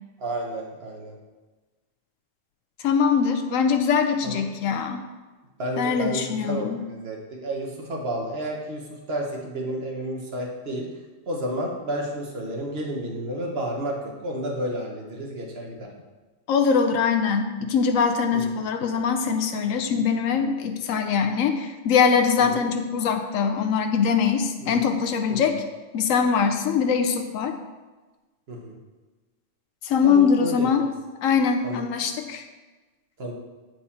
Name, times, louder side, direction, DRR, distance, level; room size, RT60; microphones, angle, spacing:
voice 1, 0.2-1.2 4.2-4.4 5.6-10.8 11.3-15.9 22.5-22.6 24.6-24.8 25.3-25.5 28.5-28.8 30.0-30.7 31.6-31.8 33.2-33.3, right 1 dB, 55° right, 0 dB, 1.3 m, -31 dB
voice 2, 2.8-5.0 5.8-6.8 16.5-25.5 25.9-27.6 29.8-30.8 31.2-32.4, left 6 dB, 90° left, 6 dB, 1.0 m, -22 dB
8.5 x 4.7 x 4.2 m, 1.2 s
omnidirectional pair, 1.3 m